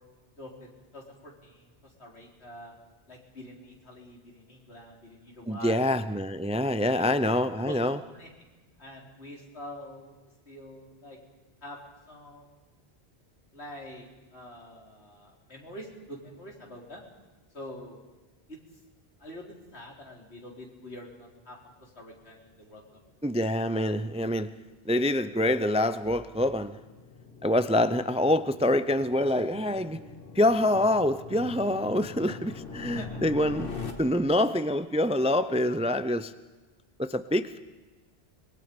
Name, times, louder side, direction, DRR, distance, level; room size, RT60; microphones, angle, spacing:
voice 1, 0.4-1.7 2.0-2.7 3.1-5.9 6.8-7.0 7.6-7.8 8.1-8.3 8.8-10.2 10.5-11.2 11.6-11.8 12.1-12.6 13.5-17.1 17.5-18.0 18.5-18.6 19.2-23.0 32.8-33.2, left 1 dB, 80° left, -1 dB, 4.0 m, -45 dB
voice 2, 5.5-8.0 23.2-24.5 24.8-26.8 27.4-30.0 30.3-33.7 34.0-36.3 37.0-37.6, left 1 dB, 10° right, 12 dB, 0.4 m, -26 dB
sound 1, 22.8-33.9, left 4 dB, 55° left, 2.1 m, -44 dB
25.5 x 22.0 x 5.3 m, 1.3 s
omnidirectional pair, 1.1 m